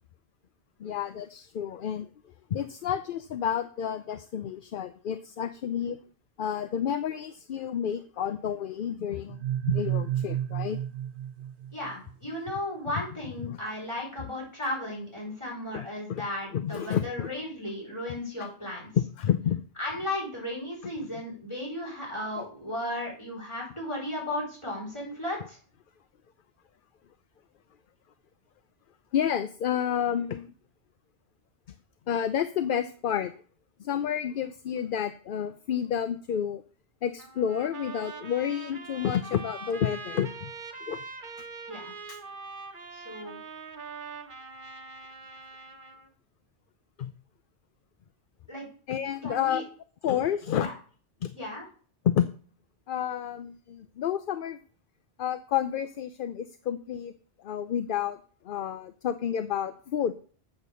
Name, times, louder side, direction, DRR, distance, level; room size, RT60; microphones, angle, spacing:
voice 1, 0.8-2.1 2.5-6.0 6.4-10.8 13.4-13.6 15.7-16.3 16.5-17.3 18.4-18.5 18.9-19.6 22.3-22.4 29.1-30.5 32.1-33.3 33.8-36.6 37.0-40.5 40.9-41.0 42.1-42.2 47.0-47.1 48.9-49.6 50.0-50.7 51.2-51.4 52.0-52.3 52.9-54.6 55.2-57.1 57.4-58.2 58.4-60.1, left 9 dB, 60° left, 11 dB, 0.7 m, -30 dB
sound 1, 9.3-12.1, right 11 dB, 80° right, 1.0 m, -31 dB
voice 2, 11.7-18.9 19.8-25.6 41.7-41.9 42.9-43.4 48.5-48.6 49.2-49.6 50.6-50.7 51.3-51.6, left 1 dB, 25° left, -3 dB, 5.0 m, -35 dB
Trumpet, 37.2-46.1, right 4 dB, 50° right, 1.2 m, -43 dB
8.0 x 6.7 x 6.8 m, 0.43 s
omnidirectional pair, 1.1 m